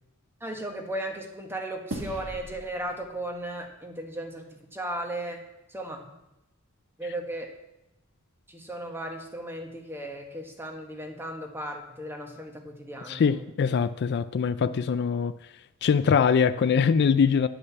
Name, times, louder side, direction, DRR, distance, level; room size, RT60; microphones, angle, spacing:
voice 1, 0.4-4.4 4.7-5.4 5.7-6.1 7.0-7.5 8.5-13.5, right 1 dB, 10° right, 1.3 m, -36 dB
sound 1, 1.9-4.5, right 1 dB, 65° right, 1.6 m, -41 dB
voice 2, 13.1-15.3 15.8-17.5, left 6 dB, 50° left, 0.3 m, -23 dB
10.0 x 5.4 x 7.0 m
head